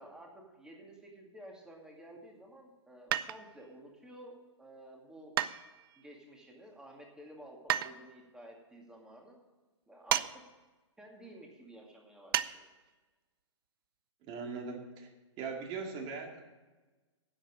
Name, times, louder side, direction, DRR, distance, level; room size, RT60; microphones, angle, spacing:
voice 1, 0.0-5.3 6.0-9.4 9.9-10.4 11.0-12.6, right 1 dB, 5° right, 0 dB, 2.3 m, -52 dB
sound 1, 3.1-3.7 5.4-6.1 7.7-7.9 10.1-10.3 10.6-10.7 12.3-12.5 12.9-13.0, right 12 dB, 50° right, 0.5 m, -31 dB
voice 2, 14.2-15.1 15.4-16.4, right 4 dB, 30° right, 3 dB, 2.2 m, -40 dB
11.0 x 7.6 x 7.3 m, 1.2 s
hypercardioid pair, 125°, 16 cm